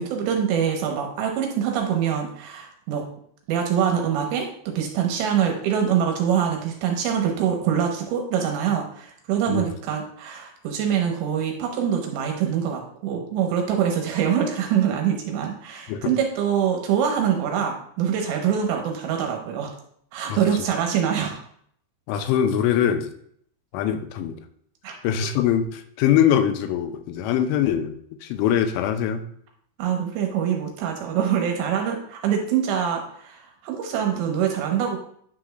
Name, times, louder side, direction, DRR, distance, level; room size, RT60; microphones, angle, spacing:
voice 1, 0.0-3.1 3.5-19.7 20.1-21.4 24.8-25.0 29.8-35.0, right 8 dB, 75° right, 2 dB, 2.8 m, -24 dB
voice 2, 22.1-23.1 23.7-24.4 25.0-27.9 28.2-29.3, left 9 dB, 85° left, 8 dB, 3.1 m, -22 dB
9.9 x 5.9 x 2.2 m, 0.64 s
omnidirectional pair, 5.5 m